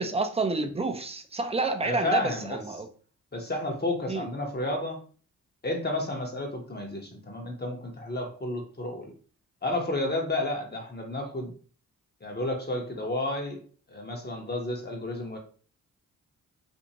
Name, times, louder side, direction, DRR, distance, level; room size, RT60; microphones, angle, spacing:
voice 1, 0.0-2.9 4.1-4.2, right 3 dB, 20° right, 0.5 m, -29 dB
voice 2, 1.8-2.6 3.3-5.0 5.6-9.1 9.6-11.5 12.2-13.6 13.9-15.4, left 1 dB, 30° left, 0.9 m, -31 dB
2.6 x 2.5 x 2.9 m
supercardioid pair, 50°, 33 cm